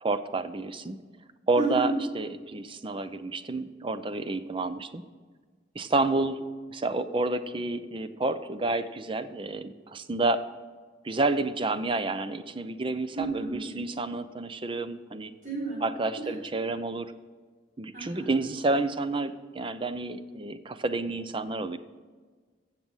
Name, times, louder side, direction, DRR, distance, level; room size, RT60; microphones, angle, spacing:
voice 1, 0.0-1.0 1.5-5.0 5.8-6.4 6.7-10.4 11.0-15.3 15.8-17.1 17.8-21.8, right 2 dB, 30° right, 12 dB, 0.6 m, -29 dB
voice 2, 1.6-1.9 13.1-13.6 15.4-15.8 16.2-16.3 17.9-18.3, right 2 dB, 45° right, -5 dB, 4.6 m, -31 dB
15.0 x 7.4 x 5.5 m, 1.4 s
head